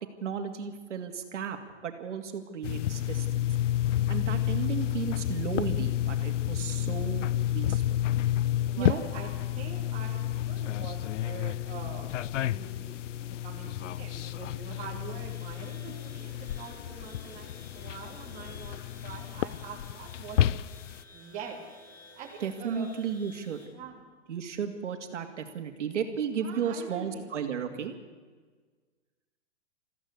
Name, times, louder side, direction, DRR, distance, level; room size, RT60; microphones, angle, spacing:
voice 1, 0.2-1.6 1.8-3.5 4.1-7.3 7.5-8.0 8.8-9.0 22.4-23.6 24.3-27.9, right 7 dB, 75° right, 6 dB, 2.6 m, -34 dB
sound 1, 2.6-21.0, left 12 dB, 85° left, 0.6 m, -31 dB
voice 2, 8.6-20.6 21.1-21.6 22.1-22.9 23.7-24.0 26.3-27.3, right 6 dB, 20° right, -1 dB, 2.7 m, -44 dB
sound 2, 15.0-23.7, left 2 dB, 10° left, 3.4 m, -55 dB
21.5 x 15.0 x 8.2 m, 1.4 s
hypercardioid pair, 175°, 36 cm